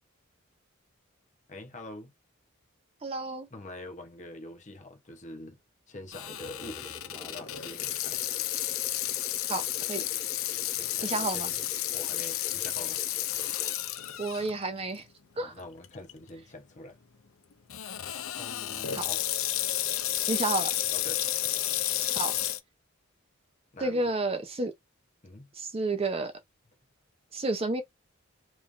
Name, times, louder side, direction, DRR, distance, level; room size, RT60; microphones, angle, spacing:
voice 1, 1.5-2.1 3.5-5.6 5.9-8.2 10.8-11.6 11.9-13.0 15.3-17.0 18.4-19.3 20.9-21.2 23.7-24.0 25.2-25.5, left 2 dB, 35° left, 0.8 m, -45 dB
voice 2, 3.0-3.5 9.5-9.6 9.9-10.0 11.0-11.5 14.2-15.1 15.4-15.5 18.9-19.1 20.3-20.7 22.1-22.4 23.8-24.7 25.5-26.3 27.3-27.8, right 2 dB, 25° right, 0.6 m, -30 dB
Water tap faucet / Sink (filling or washing), 6.1-14.5 15.0-15.1 15.8-16.1 17.7-22.6, left 12 dB, 75° left, 0.5 m, -31 dB
sound 1, 6.2-13.8, equal, 5° left, 2.1 m, -49 dB
3.5 x 3.0 x 2.5 m
head